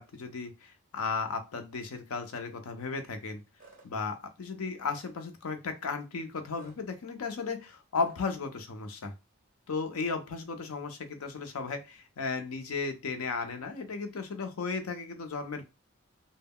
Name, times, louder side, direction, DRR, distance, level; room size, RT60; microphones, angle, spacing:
voice 1, 0.0-3.4 3.8-9.1 9.7-15.7, left 4 dB, 85° left, 7 dB, 0.5 m, -35 dB
sound 1, 3.6-3.9 4.8-5.1 6.6-6.8 8.0-8.2, right 3 dB, 40° right, 1.0 m, -56 dB
2.1 x 2.1 x 3.5 m, 0.26 s
head